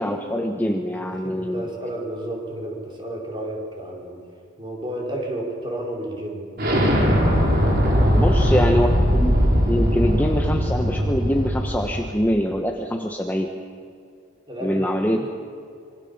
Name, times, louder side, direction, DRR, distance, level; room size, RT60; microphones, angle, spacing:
voice 1, 0.0-1.7 8.1-9.4 9.7-13.5 14.6-15.3, equal, 10° left, 2 dB, 1.2 m, -24 dB
voice 2, 1.2-4.2 4.6-6.4 8.0-8.2 14.5-15.3, right 1 dB, 25° right, -2 dB, 4.9 m, -32 dB
Explosion, 6.6-12.1, equal, 50° right, 5.1 m, -20 dB
26.0 x 24.0 x 7.2 m, 2.4 s
head